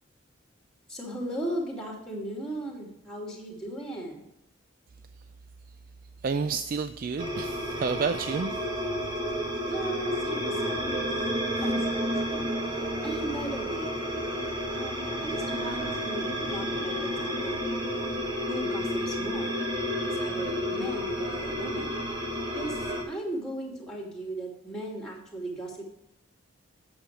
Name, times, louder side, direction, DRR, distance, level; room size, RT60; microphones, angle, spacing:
voice 1, 0.9-4.3 9.7-11.1 11.6-13.9 14.7-16.3 16.5-17.6 17.9-18.1 18.5-19.5 20.2-22.0 22.5-22.8 23.1-25.9, right 1 dB, 5° left, -1 dB, 2.6 m, -37 dB
voice 2, 6.2-8.6 11.5-11.6, right 5 dB, 45° right, 10 dB, 0.3 m, -30 dB
sound 1, 7.2-23.0, equal, 25° right, 1.5 m, -31 dB
9.1 x 7.0 x 4.6 m, 0.84 s
head